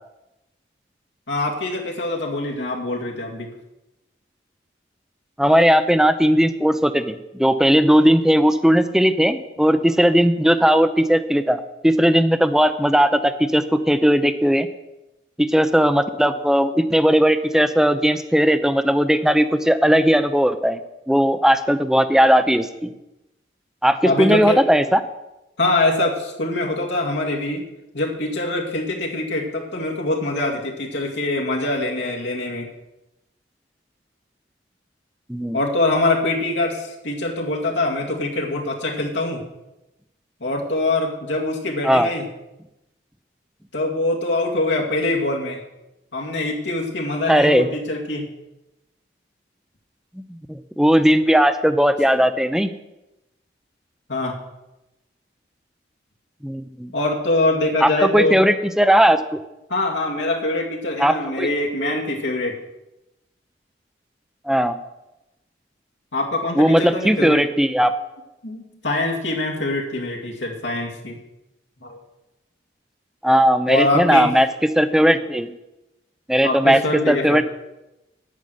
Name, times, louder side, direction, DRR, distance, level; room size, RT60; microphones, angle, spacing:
voice 1, 1.3-3.5 24.0-24.6 25.6-27.6 27.9-32.7 35.5-39.4 40.4-42.3 43.7-45.6 46.1-48.3 54.1-54.4 56.9-58.4 59.7-62.6 66.1-67.4 68.4-71.2 71.8-72.0 73.7-74.3 76.4-77.4, left 2 dB, 80° left, -1 dB, 2.3 m, -24 dB
voice 2, 5.4-14.7 15.4-20.8 21.1-22.9 23.8-25.0 35.3-35.6 41.8-42.1 47.3-47.7 50.5-52.7 56.4-56.9 57.8-59.4 61.0-61.5 64.5-64.8 66.6-67.9 73.2-74.5 74.8-75.5 76.3-76.8 77.1-77.4, equal, 5° right, 10 dB, 0.5 m, -17 dB
9.3 x 9.2 x 6.4 m, 0.95 s
head